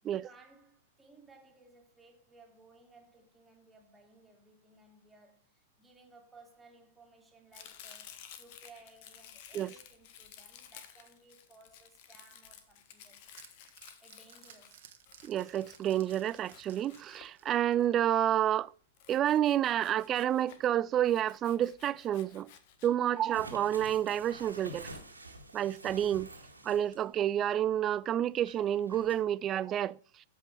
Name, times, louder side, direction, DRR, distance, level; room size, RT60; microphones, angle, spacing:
voice 1, 0.0-13.4 14.0-14.9 22.9-23.1, right 3 dB, 10° right, 2.4 m, -60 dB
Domestic sounds home sounds, 7.5-17.8 18.9-20.7 21.0-22.9, left 9 dB, 45° left, 1.1 m, -54 dB
sound 1, 12.7-18.2, right 10 dB, 55° right, 1.3 m, -57 dB
voice 2, 15.2-18.7 19.1-22.5 22.8-24.9 25.5-26.3 26.6-30.0, right 11 dB, 30° right, 0.3 m, -29 dB
sound 2, 23.1-27.1 27.5-27.6 28.4-29.1, right 1 dB, 90° right, 1.9 m, -48 dB
13.5 x 5.5 x 3.3 m
figure-of-eight pair, 100°, 0 cm